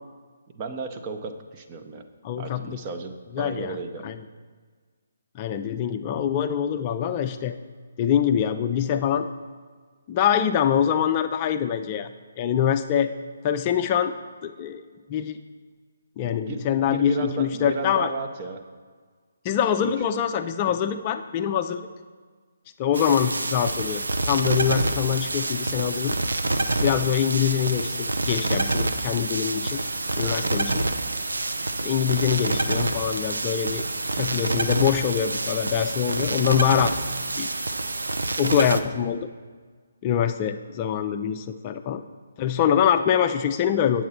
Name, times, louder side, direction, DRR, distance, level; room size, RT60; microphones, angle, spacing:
voice 1, 0.5-2.0 2.4-4.1 16.5-18.6 19.8-19.9 30.2-30.4, right 3 dB, 30° right, 5 dB, 0.7 m, -34 dB
voice 2, 2.2-2.8 3.3-3.8 4.0-4.2 5.4-7.5 8.0-9.3 10.1-12.1 12.4-13.1 13.4-14.1 14.4-14.8 15.1-15.4 16.2-18.1 19.4-21.8 22.8-24.0 24.3-26.2 26.8-29.8 30.2-30.8 31.8-33.9 34.2-36.9 37.4-37.5 38.4-39.3 40.0-42.0 42.4-44.0, left 9 dB, 30° left, 8 dB, 0.4 m, -24 dB
sound 1, 22.9-38.8, right 2 dB, 75° right, 0.6 m, -27 dB
8.5 x 7.3 x 4.2 m, 1.5 s
figure-of-eight pair, 140°, 0 cm